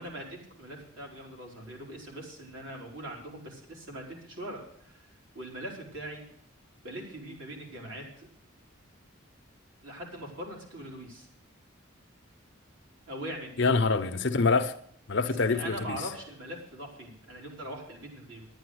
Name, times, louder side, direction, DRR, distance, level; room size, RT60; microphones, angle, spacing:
voice 1, 0.0-5.1 5.3-6.2 6.8-8.3 9.8-11.3 13.1-13.6 15.5-18.5, right 1 dB, 70° right, 3.8 m, -41 dB
voice 2, 13.6-14.7 15.1-16.0, left 4 dB, 55° left, 0.8 m, -25 dB
11.0 x 9.4 x 6.3 m
head